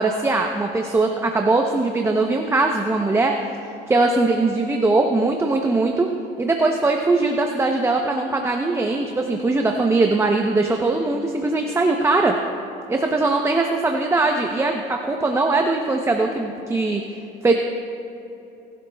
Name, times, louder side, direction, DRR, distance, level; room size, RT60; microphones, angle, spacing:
voice 1, 0.0-3.3 3.9-6.1 6.4-12.4 12.9-17.0 17.4-17.5, right 3 dB, 15° right, 3 dB, 0.7 m, -20 dB
19.5 x 11.5 x 2.3 m, 2.8 s
cardioid pair, 110°, 17 cm